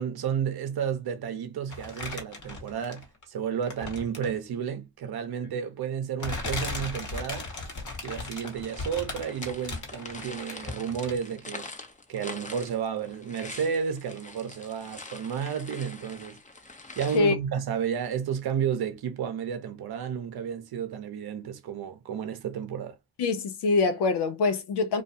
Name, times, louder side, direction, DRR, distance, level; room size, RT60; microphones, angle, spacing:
voice 1, 0.0-7.5 8.0-11.7 12.1-16.4 17.0-23.0, right 7 dB, 65° right, 0.7 m, -32 dB
sound 1, 1.7-3.2 3.6-4.4 5.4-5.5 6.2-11.3 11.6-11.7, left 3 dB, 50° left, 1.1 m, -37 dB
sound 2, 8.4-17.2, left 3 dB, 20° left, 0.6 m, -44 dB
voice 2, 23.2-25.0, left 4 dB, 80° left, 0.6 m, -24 dB
2.4 x 2.3 x 2.7 m
supercardioid pair, 45°, 40 cm